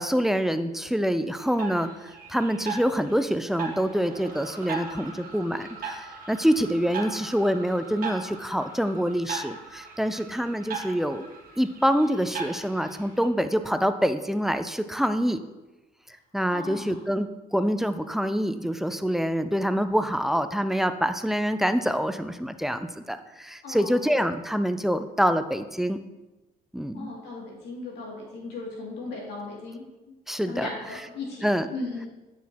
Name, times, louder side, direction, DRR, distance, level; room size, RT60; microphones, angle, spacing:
voice 1, 0.0-11.3 11.6-15.4 16.3-26.0 26.7-27.1 30.3-30.7 31.4-31.7, equal, ahead, 10 dB, 0.3 m, -26 dB
sound 1, 1.4-13.3, right 5 dB, 55° right, 1.4 m, -39 dB
voice 2, 16.5-17.0 23.6-24.0 26.9-30.1 30.5-32.1, left 3 dB, 80° left, -2 dB, 2.3 m, -37 dB
7.6 x 6.2 x 2.8 m, 1.1 s
cardioid pair, 110°, 17 cm